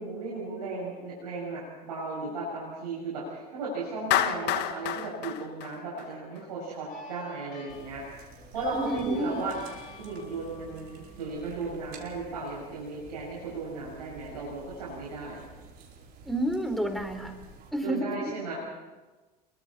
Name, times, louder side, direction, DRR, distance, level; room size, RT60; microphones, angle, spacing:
voice 1, 0.0-8.1 8.5-9.5 10.0-15.4 17.8-18.5, right 3 dB, 80° right, -5 dB, 7.0 m, -35 dB
Clapping, 4.1-6.4, left 12 dB, 60° left, 1.7 m, -29 dB
sound 1, 6.9-12.0, left 2 dB, 45° left, 7.7 m, -48 dB
sound 2, 7.7-17.7, right 3 dB, 55° right, 5.2 m, -51 dB
voice 2, 8.7-9.4 16.3-17.3 17.7-18.3, right 1 dB, ahead, 5 dB, 4.1 m, -30 dB
27.5 x 23.5 x 4.3 m, 1.2 s
hypercardioid pair, 75°, 20 cm